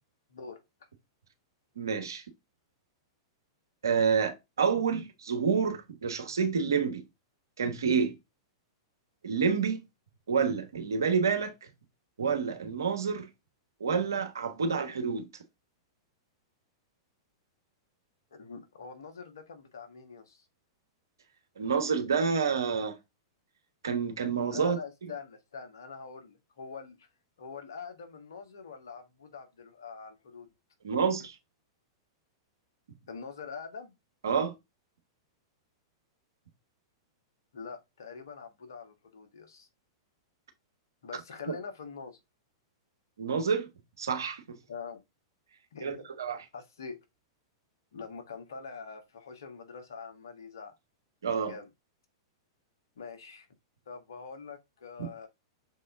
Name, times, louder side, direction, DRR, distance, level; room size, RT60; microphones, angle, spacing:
voice 1, 0.3-0.6 18.3-20.5 24.5-27.1 27.4-30.5 31.2-31.3 33.1-33.9 37.5-39.7 41.0-42.2 44.7-45.0 45.7-46.1 46.5-47.0 47.9-50.7 51.4-51.7 53.0-53.5 53.8-55.3, left 5 dB, 65° left, 1.6 m, -44 dB
voice 2, 1.7-2.2 3.8-7.0 7.6-8.1 9.2-9.8 10.3-11.7 12.2-13.3 13.8-15.3 21.6-23.0 23.8-24.8 30.8-31.3 34.2-34.5 43.2-43.7 44.0-44.6 45.8-46.4 51.2-51.5, right 6 dB, 70° right, 1.4 m, -28 dB
6.5 x 4.2 x 3.6 m
figure-of-eight pair, 100°, 2 cm